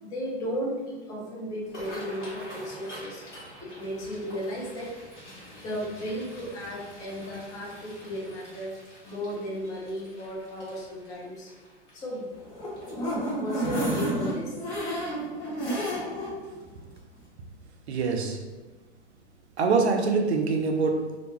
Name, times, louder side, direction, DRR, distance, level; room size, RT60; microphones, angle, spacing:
voice 1, 0.0-3.2 3.6-4.9 5.3-8.7 9.0-11.5 11.9-12.3 13.3-14.5, equal, 10° left, -4 dB, 0.3 m, -35 dB
sound 1, 1.6-14.7 15.2-15.4 15.8-16.2 16.6-16.8 18.0-18.2 18.5-18.7 19.1-19.2, equal, 80° left, 1.2 m, -47 dB
sound 2, 12.4-16.3 16.7-16.8 17.2-17.3, right 1 dB, 25° left, 0.9 m, -30 dB
voice 2, 17.9-18.4 19.6-21.1, right 4 dB, 65° right, 3 dB, 0.5 m, -24 dB
2.5 x 2.2 x 2.8 m, 1.2 s
figure-of-eight pair, 100°, 35 cm